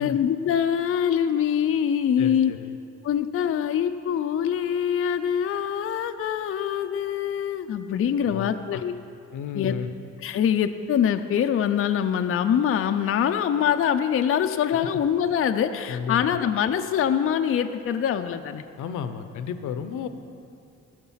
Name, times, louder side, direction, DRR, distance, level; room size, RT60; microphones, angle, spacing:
voice 1, 0.0-2.5 3.0-8.9 9.5-9.8 10.2-18.6, left 8 dB, 45° left, 7 dB, 0.5 m, -24 dB
voice 2, 2.2-2.8 8.3-8.8 9.3-9.9 15.9-16.4 18.8-20.1, left 7 dB, 80° left, 10 dB, 0.7 m, -33 dB
14.5 x 6.7 x 5.6 m, 2.6 s
cardioid pair, 90°, 30 cm